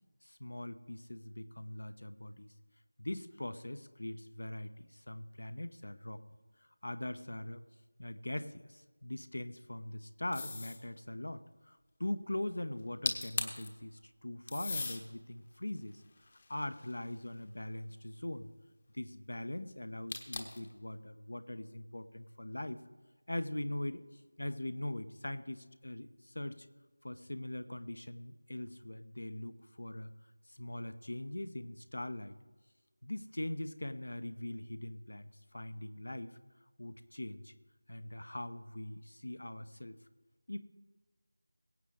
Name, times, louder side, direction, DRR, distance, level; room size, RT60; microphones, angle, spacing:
voice 1, 0.2-2.5 3.0-6.2 6.8-7.6 8.0-16.0 16.5-18.5 18.9-22.8 23.3-26.7 27.0-30.1 30.5-32.3 33.0-36.4 36.8-37.5 37.9-40.0 40.5-40.6, left 1 dB, 60° left, 12 dB, 0.9 m, -41 dB
sound 1, 10.3-10.8 12.8-12.9 13.0-13.7 14.5-15.0 15.7-17.1 20.1-20.7, left 3 dB, 30° left, 1.1 m, -38 dB
22.0 x 8.4 x 3.7 m, 1.3 s
figure-of-eight pair, 170°, 0 cm